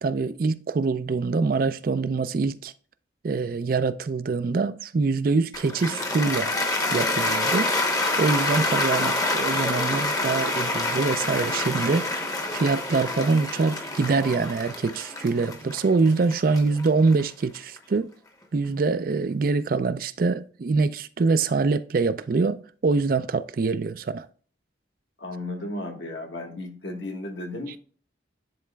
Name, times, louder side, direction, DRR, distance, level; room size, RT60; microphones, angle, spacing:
voice 1, 0.0-2.7 3.2-6.5 6.9-7.8 8.2-12.1 12.5-18.1 18.5-24.3 27.7-27.8, right 4 dB, 50° right, 0.4 m, -24 dB
Cheering / Applause, 5.5-17.8, left 2 dB, 20° left, 0.8 m, -27 dB
voice 2, 25.2-27.8, left 2 dB, 75° left, 1.5 m, -34 dB
10.5 x 4.0 x 2.2 m
head